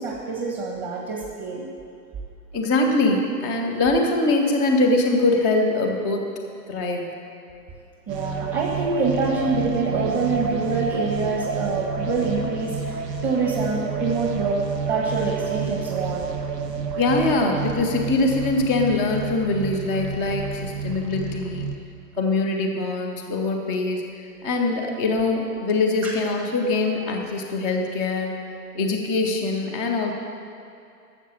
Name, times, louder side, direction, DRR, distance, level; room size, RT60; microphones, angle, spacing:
voice 1, 0.0-1.7 8.1-16.3 26.0-26.1, right 4 dB, 25° right, -2 dB, 1.5 m, -26 dB
voice 2, 2.5-6.2 6.7-7.1 17.0-21.7 22.2-24.0 24.4-28.3 28.7-30.1, left 2 dB, 5° right, -6 dB, 0.4 m, -23 dB
sound 1, 8.1-21.8, right 5 dB, 80° right, 1.3 m, -29 dB
12.5 x 7.2 x 7.3 m, 2.5 s
hypercardioid pair, 130°, 48 cm